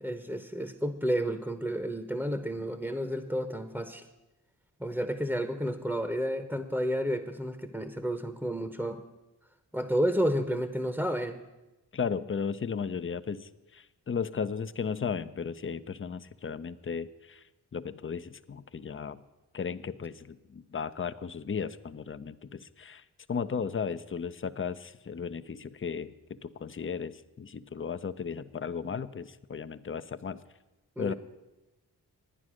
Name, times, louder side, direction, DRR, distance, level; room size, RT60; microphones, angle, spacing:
voice 1, 0.0-4.0 4.8-9.0 9.7-11.4 31.0-31.1, equal, 5° right, 8 dB, 0.9 m, -31 dB
voice 2, 11.9-17.4 17.7-19.2 19.5-30.4 31.0-31.1, left 6 dB, 30° left, 13 dB, 0.6 m, -35 dB
11.5 x 9.5 x 6.3 m, 1.0 s
cardioid pair, 45°, 41 cm